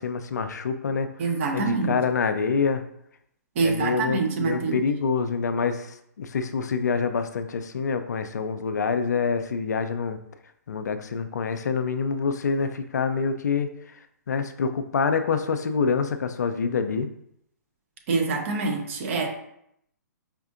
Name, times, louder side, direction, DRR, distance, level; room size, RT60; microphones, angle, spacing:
voice 1, 0.0-1.1 1.5-2.8 3.6-10.2 10.7-13.7 14.3-17.1, left 5 dB, 70° left, 9 dB, 0.4 m, -26 dB
voice 2, 1.2-1.9 3.6-4.8 18.1-19.3, right 4 dB, 45° right, 3 dB, 0.7 m, -25 dB
5.0 x 2.6 x 2.5 m, 0.74 s
figure-of-eight pair, 130°, 10 cm